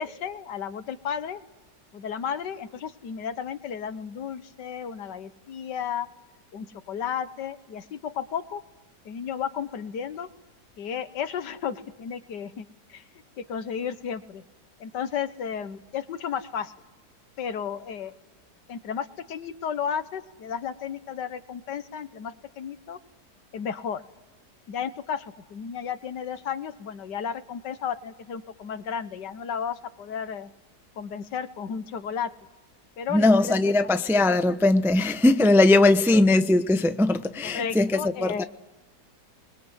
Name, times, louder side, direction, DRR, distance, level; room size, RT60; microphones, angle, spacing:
voice 1, 0.0-1.4 1.9-6.1 6.5-8.6 9.1-10.3 10.8-13.0 13.4-14.4 14.8-16.7 17.4-18.1 18.7-23.0 23.5-24.0 24.7-30.5 31.0-32.3 33.0-34.1 36.1-36.2 37.4-38.4, left 7 dB, 85° left, 1.8 m, -33 dB
voice 2, 33.1-38.4, left 2 dB, 5° right, 0.4 m, -20 dB
29.0 x 22.0 x 8.0 m
omnidirectional pair, 1.8 m